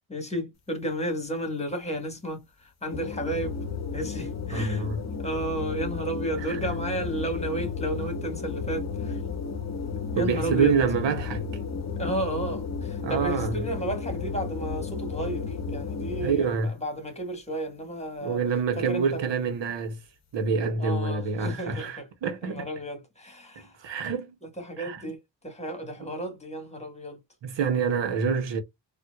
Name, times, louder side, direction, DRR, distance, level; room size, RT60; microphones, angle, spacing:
voice 1, 0.1-3.6 3.9-4.9 5.2-9.2 10.2-10.7 12.0-18.4 18.8-19.3 20.8-22.1 22.4-23.7 24.4-27.2, right 1 dB, 15° left, 1.7 m, -33 dB
sound 1, 2.9-16.6, left 5 dB, 40° left, 0.9 m, -33 dB
voice 2, 4.5-5.0 6.5-6.6 10.1-11.4 13.0-13.5 16.2-16.7 18.2-20.0 20.3-22.7 23.8-24.3 24.8-25.0 27.4-28.6, right 5 dB, 75° right, 1.0 m, -26 dB
4.2 x 2.5 x 2.3 m
cardioid pair, 75°, 44 cm